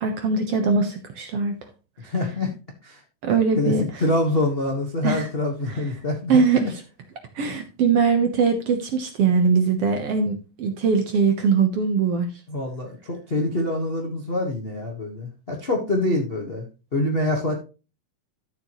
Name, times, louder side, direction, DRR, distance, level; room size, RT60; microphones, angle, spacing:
voice 1, 0.0-1.5 3.2-4.0 5.0-5.3 5.7-5.8 6.3-6.7 7.3-12.3, right 5 dB, 65° right, 6 dB, 1.6 m, -21 dB
voice 2, 2.0-2.5 2.8-3.0 3.6-3.7 4.0-6.4 12.5-16.6 16.9-17.5, left 2 dB, 80° left, 1 dB, 0.5 m, -25 dB
13.0 x 6.9 x 3.0 m, 0.32 s
omnidirectional pair, 3.8 m